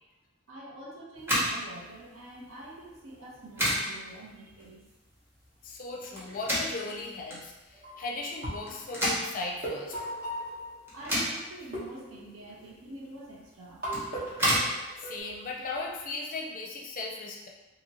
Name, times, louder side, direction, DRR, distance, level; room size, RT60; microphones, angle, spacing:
voice 1, 0.5-4.8 10.9-13.8, right 1 dB, 75° right, -4 dB, 0.8 m, -46 dB
sound 1, 1.1-16.1, equal, 10° right, 0.8 m, -34 dB
voice 2, 5.6-10.0 15.0-17.5, left 3 dB, 45° left, -1 dB, 0.5 m, -37 dB
sound 2, 7.7-8.0 8.4-11.2 11.7-12.8 13.8-15.2, equal, 50° right, 1.0 m, -38 dB
2.8 x 2.7 x 2.8 m, 1.1 s
head